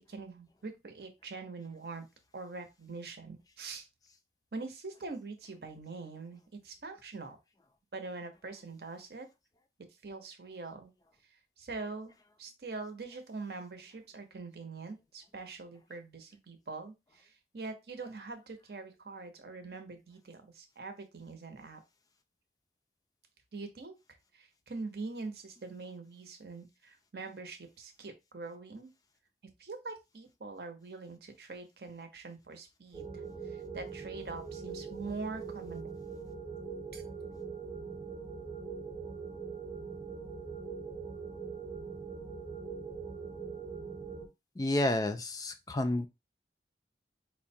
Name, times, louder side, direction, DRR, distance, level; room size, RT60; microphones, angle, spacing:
voice 1, 0.1-2.1 2.3-3.9 4.5-7.4 7.9-9.3 10.0-10.9 11.3-12.1 12.4-21.8 23.5-23.9 24.3-28.9 29.6-36.0 36.9-37.0, right 3 dB, 65° right, 0.8 m, -44 dB
sound 1, 32.9-44.3, right 5 dB, 10° right, 0.7 m, -42 dB
voice 2, 44.6-46.1, left 1 dB, 20° left, 0.3 m, -30 dB
4.6 x 2.1 x 2.6 m
head